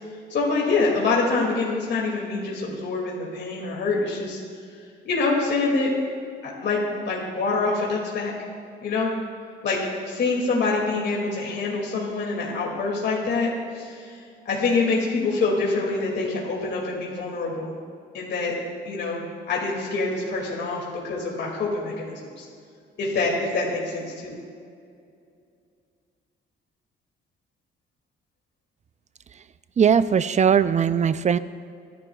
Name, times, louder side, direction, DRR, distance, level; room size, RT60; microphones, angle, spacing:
voice 1, 0.3-4.4 5.0-5.9 6.4-6.8 7.1-8.3 8.8-9.1 9.6-17.7 18.1-18.5 18.8-19.2 19.5-22.5 23.0-24.4, left 3 dB, 60° left, -3 dB, 2.5 m, -25 dB
voice 2, 29.8-31.4, right 7 dB, 35° right, 14 dB, 0.4 m, -19 dB
23.5 x 11.0 x 2.4 m, 2.3 s
cardioid pair, 90°, 20 cm